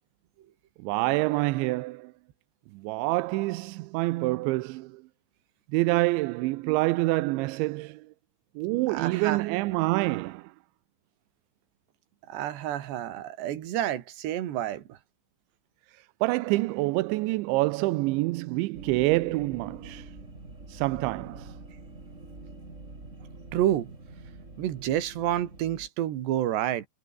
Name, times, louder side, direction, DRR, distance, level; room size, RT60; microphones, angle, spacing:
voice 1, 0.8-2.1 2.7-5.0 5.7-8.1 8.6-10.5 16.2-20.1 20.7-21.6, right 21 dB, 80° right, 2.8 m, -27 dB
voice 2, 8.9-9.4 12.3-15.0 23.5-23.9 24.6-26.9, right 12 dB, 65° right, 3.9 m, -29 dB
sound 1, 18.7-25.9, right 2 dB, 15° right, 4.0 m, -46 dB
omnidirectional pair, 5.7 m